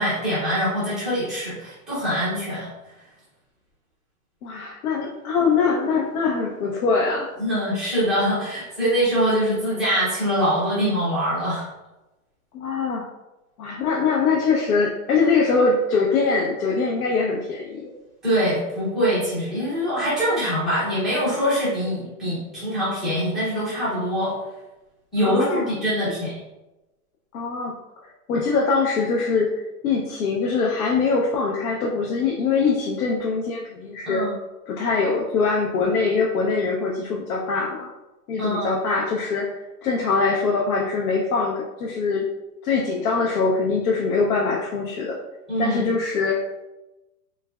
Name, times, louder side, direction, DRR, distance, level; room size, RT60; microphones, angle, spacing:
voice 1, 0.0-2.7 7.4-11.7 18.2-24.3 25.1-26.4 34.0-34.3 38.4-38.8 45.5-45.8, equal, ahead, -12 dB, 0.4 m, -23 dB
voice 2, 4.4-7.3 12.5-13.1 13.6-17.8 25.2-25.8 27.3-27.8 28.3-34.2 34.7-37.9 38.3-42.3 42.6-45.2 45.6-46.5, left 4 dB, 70° left, -2 dB, 0.7 m, -23 dB
3.3 x 3.1 x 2.2 m, 1.0 s
hypercardioid pair, 155°, 45 cm